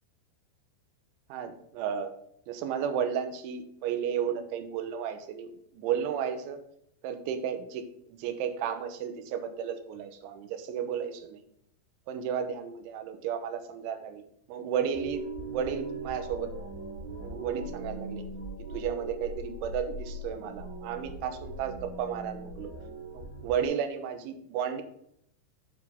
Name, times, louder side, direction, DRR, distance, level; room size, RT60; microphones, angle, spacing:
voice 1, 1.3-2.1 2.5-6.6 7.0-11.4 12.1-14.2 14.5-15.2 15.5-16.6 17.2-18.2 18.6-22.7 23.1-24.8, right 8 dB, 80° right, 8 dB, 3.3 m, -33 dB
sound 1, 14.9-23.7, right 2 dB, 55° right, 4.2 m, -40 dB
8.4 x 7.4 x 3.6 m, 0.72 s
omnidirectional pair, 5.6 m